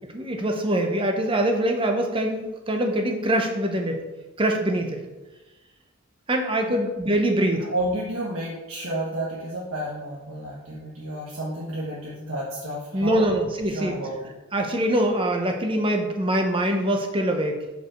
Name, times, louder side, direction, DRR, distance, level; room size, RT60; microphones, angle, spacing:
voice 1, 0.1-4.0 4.4-5.0 6.3-7.7 12.9-13.9 14.5-17.6, right 1 dB, 25° right, 3 dB, 0.8 m, -24 dB
voice 2, 7.6-13.3 13.7-14.3, right 1 dB, 70° right, -6 dB, 1.3 m, -31 dB
5.3 x 4.8 x 6.2 m, 1.1 s
head